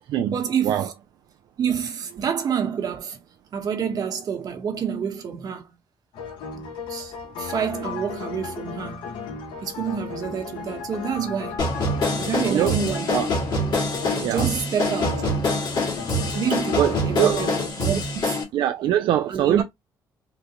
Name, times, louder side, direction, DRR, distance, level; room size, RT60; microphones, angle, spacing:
voice 1, 0.3-0.9 1.6-3.2 3.5-5.7 6.9-9.2 9.6-11.7 12.2-13.2 14.2-15.1 16.3-18.4 19.3-19.6, right 7 dB, 50° right, 1.1 m, -28 dB
sound 1, 6.1-17.7, left 5 dB, 85° left, 1.0 m, -35 dB
sound 2, 11.6-18.4, left 1 dB, 60° left, 1.7 m, -25 dB
voice 2, 16.8-17.4 18.5-19.6, right 11 dB, 75° right, 0.3 m, -22 dB
3.8 x 2.2 x 2.8 m
cardioid pair, 110°, 8 cm